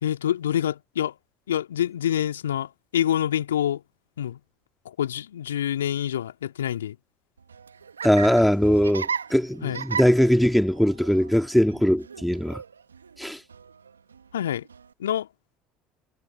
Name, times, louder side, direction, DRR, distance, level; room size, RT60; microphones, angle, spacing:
voice 1, 0.0-1.1 1.5-3.8 4.2-4.4 4.8-7.0 9.6-9.8 14.3-14.7 15.0-15.3, left 10 dB, 75° left, 2.6 m, -26 dB
Laughter, 7.4-14.9, right 6 dB, 85° right, 1.8 m, -37 dB
voice 2, 8.0-12.6 13.2-13.4, equal, ahead, 2.8 m, -21 dB
figure-of-eight pair, 65°, 0 cm